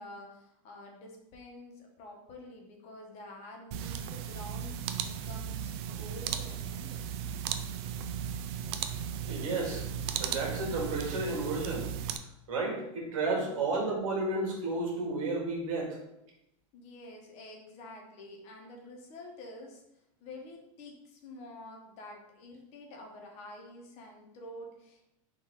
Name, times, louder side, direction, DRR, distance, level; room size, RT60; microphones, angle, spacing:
voice 1, 0.0-5.7 6.0-6.9 16.7-19.8 20.2-25.1, left 1 dB, 40° left, 1 dB, 0.9 m, -48 dB
sound 1, 3.7-12.2, right 8 dB, 50° right, 0.4 m, -36 dB
voice 2, 9.3-11.9 12.5-16.0, right 3 dB, 70° right, -1 dB, 1.5 m, -32 dB
3.8 x 2.6 x 4.3 m, 0.84 s
supercardioid pair, 140°, 17 cm